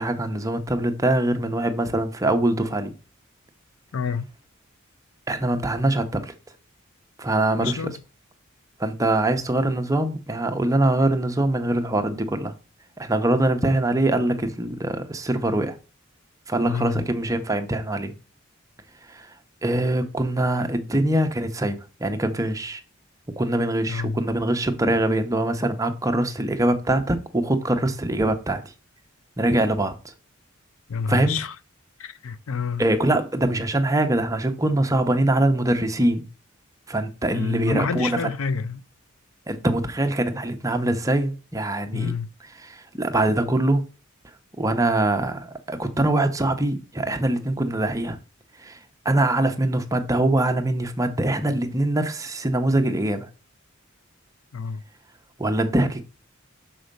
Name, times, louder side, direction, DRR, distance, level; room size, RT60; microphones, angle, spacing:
voice 1, 0.0-2.9 5.3-6.3 7.2-7.8 8.8-12.5 13.0-15.8 16.5-18.1 19.1-19.3 19.6-22.8 23.4-28.6 29.4-30.1 31.1-31.4 32.8-36.3 36.9-38.3 39.5-42.1 42.6-43.8 44.6-48.2 48.6-48.8 49.0-53.3 55.4-56.0, right 1 dB, 15° right, 0.7 m, -23 dB
voice 2, 3.9-4.3 7.6-8.0 16.7-17.1 23.9-24.2 30.9-31.5 32.0-32.8 37.3-38.8 41.9-42.3 54.5-54.8, left 5 dB, 75° left, 0.5 m, -28 dB
6.3 x 4.4 x 5.2 m
head